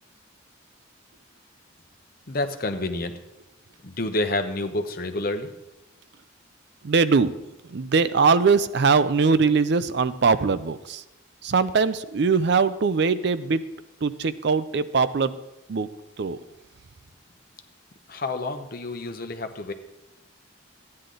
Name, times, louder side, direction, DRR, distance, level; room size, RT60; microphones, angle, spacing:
voice 1, 2.3-3.2 3.8-5.5 18.1-19.7, left 2 dB, 50° left, 7 dB, 0.9 m, -28 dB
voice 2, 6.8-7.3 7.7-11.0 11.4-13.6 14.0-15.4 15.7-15.9 16.2-16.4, right 5 dB, 60° right, 14 dB, 0.5 m, -21 dB
13.5 x 9.7 x 3.8 m, 0.93 s
head